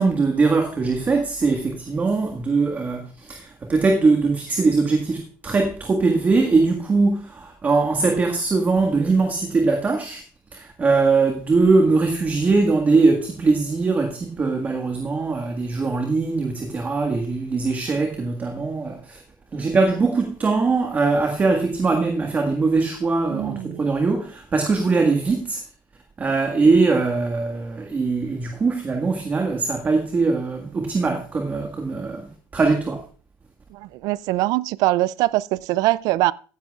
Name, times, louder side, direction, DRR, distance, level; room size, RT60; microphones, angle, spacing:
voice 1, 0.0-10.2 10.5-19.2 19.5-25.6 26.2-33.0, right 3 dB, 25° right, 1.7 m, -21 dB
voice 2, 23.3-23.8 33.7-36.3, right 18 dB, 65° right, 0.4 m, -22 dB
15.0 x 10.5 x 2.4 m
cardioid pair, 120°, 7 cm